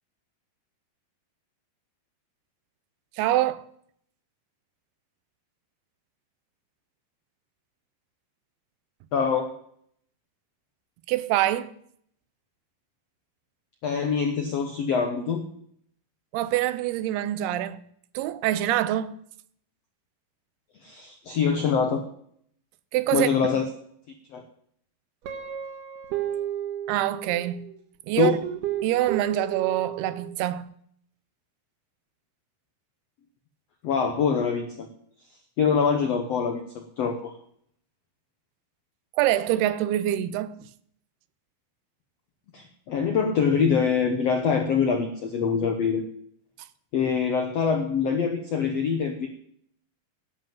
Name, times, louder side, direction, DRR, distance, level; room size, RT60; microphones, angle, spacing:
voice 1, 3.2-3.7 11.1-11.7 16.3-17.8 18.1-19.1 22.9-23.3 26.9-27.6 28.1-28.4 28.8-30.7 39.2-40.5, right 13 dB, 85° right, 2.7 m, -25 dB
voice 2, 9.1-9.5 13.8-15.4 20.8-22.0 23.1-23.7 24.3-24.4 28.1-28.3 33.8-34.9 35.6-37.3 42.5-46.0 46.9-49.3, left 6 dB, 75° left, 1.4 m, -24 dB
Guitar, 25.3-27.7 28.4-30.4, right 11 dB, 65° right, 2.6 m, -33 dB
11.0 x 8.0 x 9.1 m
omnidirectional pair, 4.5 m